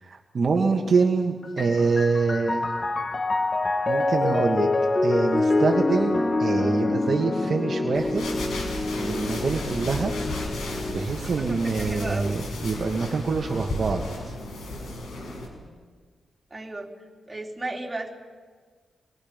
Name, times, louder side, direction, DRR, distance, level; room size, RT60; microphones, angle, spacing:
voice 1, 0.0-2.7 3.9-4.7 5.0-8.3 9.0-10.1 10.9-14.0, right 4 dB, 55° right, 1 dB, 1.8 m, -25 dB
Piano, 1.4-11.0, left 2 dB, 35° left, 1.2 m, -26 dB
sound 1, 7.9-15.5, left 1 dB, 90° left, 5.4 m, -34 dB
voice 2, 11.2-12.4 16.5-16.9 17.3-18.1, right 2 dB, 20° right, -1 dB, 3.7 m, -34 dB
27.0 x 22.0 x 5.3 m, 1.5 s
cardioid pair, 75°, 0 cm